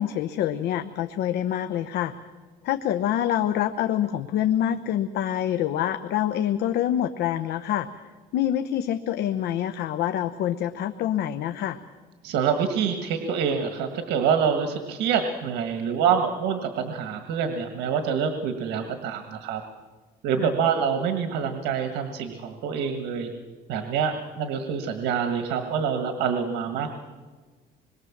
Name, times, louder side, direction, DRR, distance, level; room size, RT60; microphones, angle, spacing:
voice 1, 0.0-2.2 2.6-7.9 8.3-11.8 20.4-20.6, left 11 dB, 75° left, 9 dB, 0.9 m, -26 dB
voice 2, 12.2-19.6 20.2-23.3 23.7-27.0, right 7 dB, 85° right, 6 dB, 1.7 m, -26 dB
26.5 x 22.0 x 7.3 m, 1.4 s
cardioid pair, 110°, 17 cm